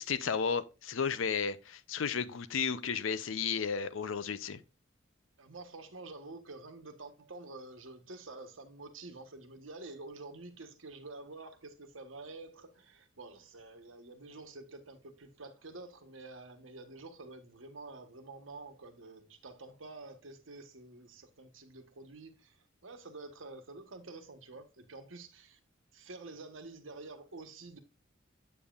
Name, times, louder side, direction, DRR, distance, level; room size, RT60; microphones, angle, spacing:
voice 1, 0.0-4.6, left 6 dB, 85° left, 0.6 m, -33 dB
voice 2, 5.4-25.6 25.9-27.8, right 3 dB, 85° right, 1.2 m, -48 dB
8.4 x 7.1 x 2.4 m
head